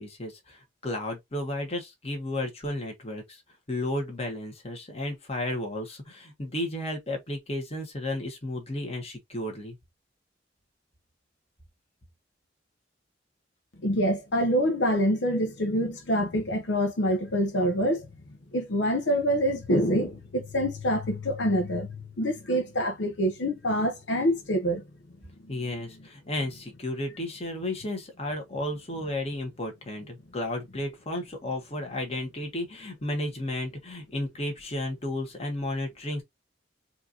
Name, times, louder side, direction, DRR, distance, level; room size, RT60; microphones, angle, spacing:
voice 1, 0.0-3.4 3.7-9.8 25.5-36.2, left 1 dB, 35° left, 1.4 m, -33 dB
voice 2, 13.8-18.1 18.5-24.8, equal, 70° left, 0.7 m, -26 dB
4.4 x 2.7 x 2.8 m
head